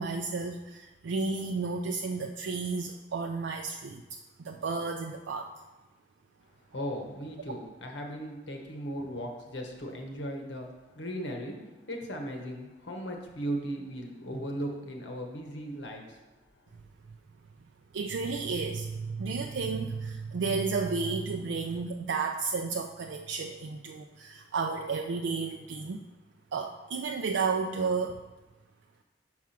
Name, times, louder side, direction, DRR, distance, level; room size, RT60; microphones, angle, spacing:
voice 1, 0.0-4.0 4.4-5.5 17.9-26.0 26.5-28.2, right 4 dB, 85° right, 3 dB, 0.4 m, -32 dB
voice 2, 6.7-16.2, equal, 80° left, 2 dB, 1.2 m, -37 dB
6.1 x 4.7 x 5.8 m, 1.1 s
head